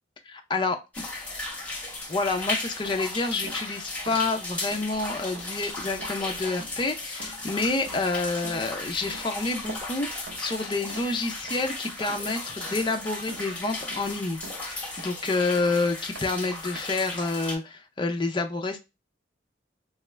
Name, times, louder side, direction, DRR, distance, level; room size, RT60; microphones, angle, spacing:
voice 1, 0.3-1.1 2.1-18.8, left 3 dB, 25° left, 5 dB, 0.4 m, -28 dB
sound 1, 0.9-17.5, left 2 dB, 10° left, 0.8 m, -36 dB
sound 2, 2.8-3.2 3.4-3.7 4.1-4.3 4.7-4.9 5.4-5.7 6.0-6.3 6.6-6.9 7.2-7.5 7.9-8.1 8.4-8.7 9.1-10.0 10.3-10.6 10.9-11.2 11.5-11.7 12.0-12.4 12.7-12.9 13.3-13.5 13.8-14.1 14.4-15.3 15.6-15.8 16.2-16.8, right 2 dB, 75° right, 0.7 m, -44 dB
3.0 x 2.3 x 3.2 m, 0.25 s
head